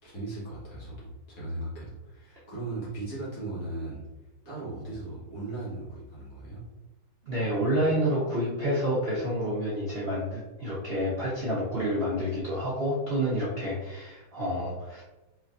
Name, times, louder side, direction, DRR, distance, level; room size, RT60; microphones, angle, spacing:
voice 1, 0.0-4.0 4.4-6.6, right 2 dB, 45° left, -7 dB, 1.7 m, -37 dB
voice 2, 7.3-15.0, equal, 85° right, -8 dB, 0.5 m, -29 dB
4.5 x 3.2 x 2.5 m, 1.1 s
omnidirectional pair, 2.3 m